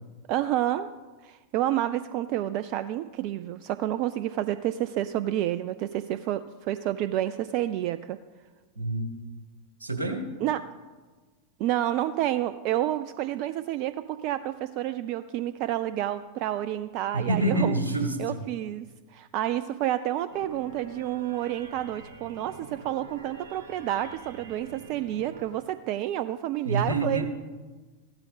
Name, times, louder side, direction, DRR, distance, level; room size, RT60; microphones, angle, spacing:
voice 1, 0.3-0.9 1.2-8.2 10.4-10.6 11.6-17.8 18.2-27.3, right 13 dB, 45° right, 13 dB, 0.3 m, -29 dB
voice 2, 8.7-9.1 9.8-10.3 17.1-18.4 26.6-27.3, right 2 dB, 80° right, 3 dB, 1.5 m, -27 dB
sound 1, 20.3-25.5, right 3 dB, 60° right, 2.6 m, -46 dB
15.0 x 12.0 x 3.4 m, 1.4 s
figure-of-eight pair, 90°, 0 cm